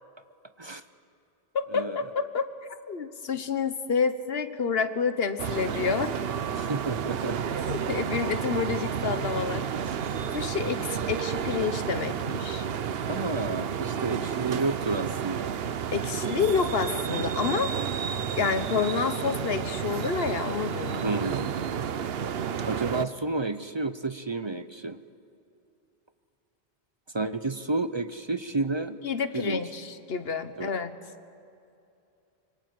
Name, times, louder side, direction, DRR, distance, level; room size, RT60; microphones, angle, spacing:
voice 1, 1.5-2.5 2.9-6.1 7.7-9.7 10.3-12.7 15.9-17.7 18.4-21.1 29.0-31.0, left 5 dB, 70° left, 10 dB, 1.4 m, -29 dB
monaco street ambiance from third floor, 5.4-23.1, right 8 dB, 70° right, 1.0 m, -31 dB
voice 2, 6.5-7.4 9.7-10.2 13.0-15.5 21.0-21.5 22.6-25.0 27.1-29.0 29.3-29.6 30.6-30.7, right 3 dB, 30° right, 11 dB, 0.6 m, -31 dB
26.0 x 24.5 x 7.8 m, 2.6 s
omnidirectional pair, 1.0 m